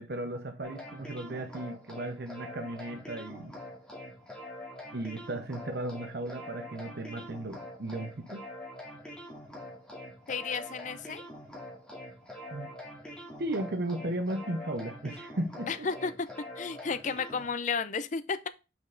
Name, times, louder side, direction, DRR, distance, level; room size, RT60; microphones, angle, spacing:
voice 1, 0.0-3.6 4.9-8.4 12.5-12.7 13.4-15.9, right 1 dB, 60° right, 0.7 m, -35 dB
sound 1, 0.6-17.5, left 1 dB, 5° left, 2.0 m, -45 dB
voice 2, 10.3-11.2 15.7-16.1 16.6-18.5, left 5 dB, 40° left, 0.5 m, -33 dB
6.1 x 5.3 x 3.8 m
head